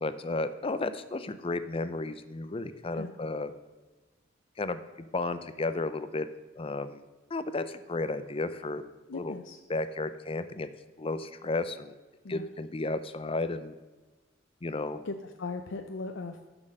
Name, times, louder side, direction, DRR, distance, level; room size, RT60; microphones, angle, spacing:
voice 1, 0.0-3.5 4.6-6.3 6.6-7.0 7.3-8.8 9.1-9.3 9.7-10.7 11.0-11.9 12.3-13.8 14.6-15.0, left 2 dB, 30° left, 12 dB, 0.6 m, -33 dB
voice 2, 9.1-9.6 12.2-12.5 15.0-16.4, left 3 dB, 80° left, 6 dB, 0.6 m, -38 dB
11.0 x 6.2 x 6.6 m, 1.2 s
head